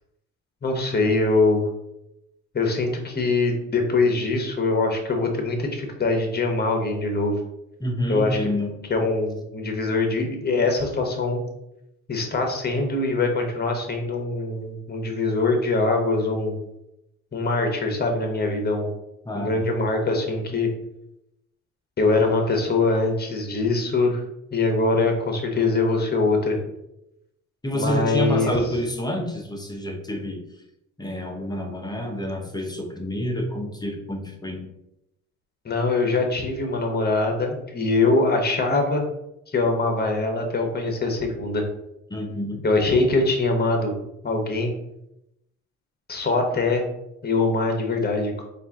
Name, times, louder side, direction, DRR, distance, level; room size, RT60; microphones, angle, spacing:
voice 1, 0.6-1.6 2.5-7.4 8.1-8.4 8.9-11.4 12.1-16.5 17.3-18.9 19.3-20.7 22.0-24.2 24.5-26.6 27.7-28.5 35.6-39.0 39.5-41.6 42.6-43.9 44.2-44.7 46.1-46.8 47.2-48.4, left 3 dB, 30° left, 3 dB, 1.1 m, -23 dB
voice 2, 7.8-8.7 19.2-19.6 27.6-30.4 31.0-34.7 42.1-42.6, left 1 dB, 15° left, 1 dB, 0.7 m, -28 dB
4.2 x 2.6 x 3.6 m, 0.84 s
cardioid pair, 90°, 30 cm